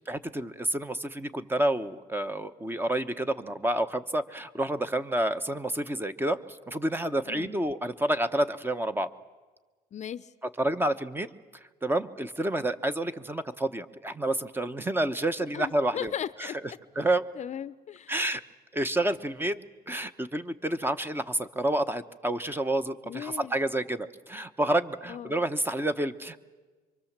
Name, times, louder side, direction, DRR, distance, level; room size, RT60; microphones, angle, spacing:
voice 1, 0.1-9.1 10.6-16.1 16.4-16.5 17.0-17.2 18.1-18.4 18.7-26.4, right 1 dB, 10° right, 11 dB, 1.0 m, -29 dB
voice 2, 9.9-10.3 15.5-16.8 17.3-18.1 23.0-23.6 25.1-25.4, left 9 dB, 45° left, 16 dB, 0.7 m, -37 dB
26.0 x 24.0 x 7.4 m, 1.3 s
cardioid pair, 110°, 17 cm